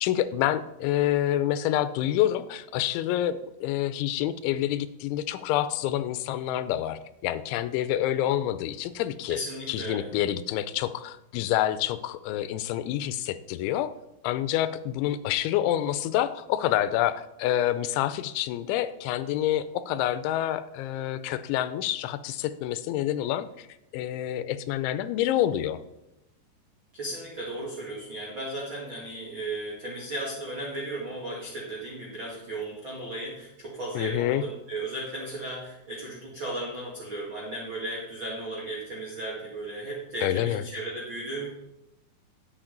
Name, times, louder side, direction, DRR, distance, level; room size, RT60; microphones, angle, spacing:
voice 1, 0.0-9.4 9.7-13.9 14.2-23.7 23.9-25.8 34.0-34.4 40.2-40.6, left 12 dB, 85° left, 14 dB, 3.0 m, -27 dB
voice 2, 9.3-10.1 26.9-41.5, right 1 dB, 80° right, -3 dB, 1.1 m, -35 dB
10.5 x 8.1 x 3.8 m, 0.89 s
omnidirectional pair, 5.2 m